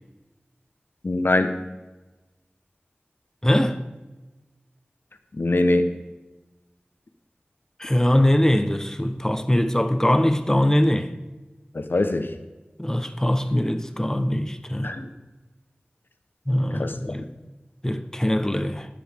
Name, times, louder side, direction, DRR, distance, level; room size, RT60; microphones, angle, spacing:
voice 1, 1.0-1.6 5.4-5.9 11.7-12.3 14.8-15.1 16.7-16.9, left 2 dB, 70° left, 1.0 m, -22 dB
voice 2, 3.4-3.8 7.8-11.1 12.8-14.9 16.5-17.3 17.8-18.9, left 1 dB, 15° left, 0.9 m, -22 dB
20.0 x 7.0 x 3.6 m
wide cardioid pair, 55°, 4 cm